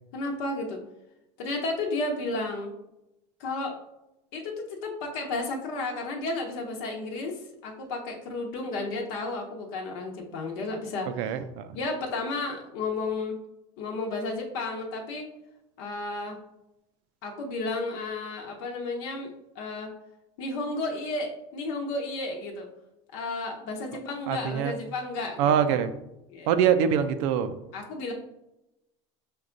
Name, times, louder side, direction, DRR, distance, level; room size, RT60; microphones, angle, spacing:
voice 1, 0.1-0.8 1.4-2.7 3.4-3.8 4.3-11.1 11.7-13.4 13.8-15.3 15.8-16.4 17.2-19.3 19.5-19.9 20.4-22.7 23.1-25.5 26.3-26.5 27.7-28.1, left 2 dB, 75° left, 0 dB, 0.9 m, -32 dB
voice 2, 11.1-11.8 24.3-24.8 25.4-25.9 26.5-27.6, right 8 dB, 75° right, 10 dB, 0.5 m, -24 dB
5.2 x 2.3 x 3.8 m, 0.90 s
supercardioid pair, 110°, 16 cm